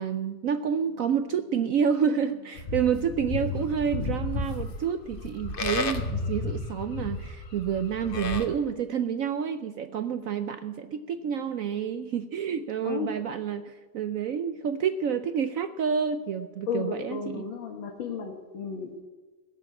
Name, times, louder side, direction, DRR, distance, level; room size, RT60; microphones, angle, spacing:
voice 1, 0.0-17.4, right 7 dB, 75° right, 10 dB, 0.7 m, -29 dB
Livestock farm animals working animals, 2.6-8.5, left 3 dB, 40° left, 0.8 m, -32 dB
voice 2, 16.7-19.0, left 6 dB, 85° left, 0 dB, 2.2 m, -33 dB
16.0 x 7.5 x 8.5 m, 1.2 s
omnidirectional pair, 2.1 m